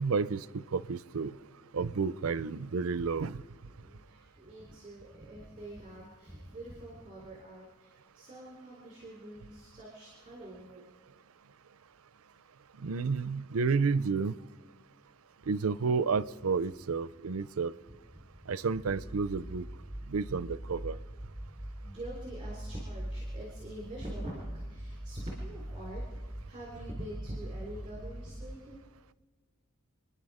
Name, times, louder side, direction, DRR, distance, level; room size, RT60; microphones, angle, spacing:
voice 1, 0.0-1.3 1.7-3.4 12.8-14.3 15.5-17.7 18.5-19.7 20.1-21.0, right 5 dB, 85° right, 17 dB, 0.5 m, -31 dB
voice 2, 3.8-10.8 18.1-18.3 21.5-28.8, right 1 dB, 25° right, -3 dB, 3.8 m, -46 dB
sound 1, 18.7-28.6, right 1 dB, 15° left, 1.8 m, -42 dB
28.5 x 10.0 x 5.0 m, 1.4 s
head